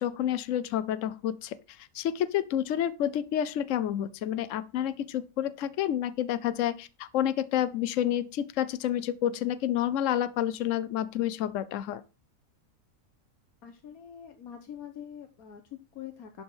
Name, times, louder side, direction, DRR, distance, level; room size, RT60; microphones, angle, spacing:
voice 1, 0.0-12.0, left 11 dB, 65° left, 1.0 m, -29 dB
voice 2, 13.6-16.4, left 9 dB, 90° left, 1.5 m, -44 dB
11.5 x 4.6 x 5.5 m
omnidirectional pair, 1.5 m